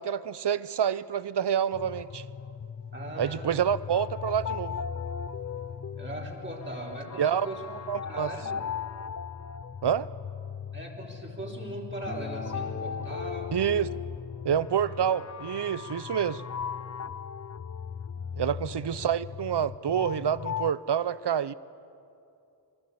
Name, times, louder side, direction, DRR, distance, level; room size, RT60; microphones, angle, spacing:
voice 1, 0.0-2.2 3.2-4.8 7.2-7.5 7.9-8.3 9.8-10.1 13.5-13.9 14.4-16.4 18.4-21.5, right 8 dB, 65° right, 0.7 m, -27 dB
sound 1, 1.7-20.7, left 7 dB, 40° left, 0.5 m, -37 dB
voice 2, 2.9-3.7 6.0-7.7 8.0-8.7 10.7-13.6 18.4-18.9, right 1 dB, 25° right, 4.0 m, -40 dB
Acoustic guitar, 12.1-17.3, left 2 dB, 20° left, 1.0 m, -47 dB
26.5 x 19.5 x 8.4 m
wide cardioid pair, 65°, 44 cm